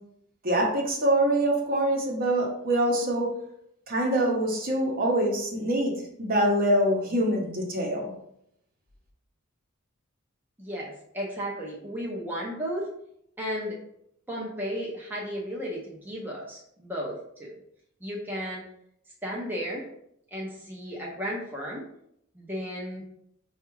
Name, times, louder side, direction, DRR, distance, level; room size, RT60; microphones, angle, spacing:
voice 1, 0.4-3.3 3.9-5.9 6.2-8.1, right 1 dB, 45° right, 0 dB, 0.8 m, -24 dB
voice 2, 10.6-12.9 13.4-13.8 14.3-17.5 18.0-18.6 19.2-19.9 20.3-21.8 22.3-23.0, equal, 10° right, -4 dB, 0.6 m, -34 dB
4.5 x 2.3 x 3.0 m, 0.73 s
head